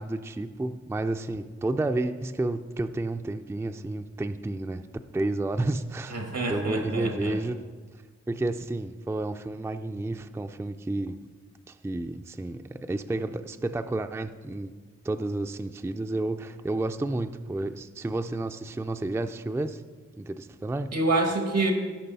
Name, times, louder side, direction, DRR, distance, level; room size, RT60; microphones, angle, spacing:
voice 1, 0.0-4.8 5.1-6.2 6.5-7.6 8.3-11.2 11.7-14.7 15.0-19.8 20.2-20.9, right 2 dB, 10° right, 7 dB, 0.3 m, -31 dB
voice 2, 6.1-7.4 20.9-21.7, right 2 dB, 90° right, 3 dB, 1.5 m, -27 dB
17.5 x 6.0 x 4.1 m, 1.4 s
wide cardioid pair, 90°, 30 cm